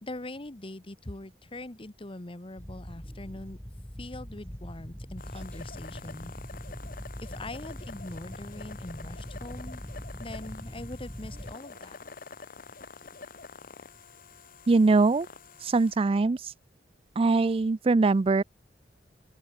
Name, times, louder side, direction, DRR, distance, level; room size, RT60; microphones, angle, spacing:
voice 1, 0.0-3.6 4.0-6.3 7.2-9.8 10.2-12.0, left 2 dB, 30° left, 1.4 m, -42 dB
sound 1, 2.6-11.6, equal, 5° left, 1.7 m, -42 dB
sound 2, 5.2-16.0, left 4 dB, 55° left, 1.5 m, -47 dB
sound 3, 5.9-11.9, right 1 dB, 55° right, 6.3 m, -62 dB
voice 2, 14.7-15.3 15.6-16.5 17.2-18.4, right 3 dB, 35° right, 0.4 m, -22 dB
open air
head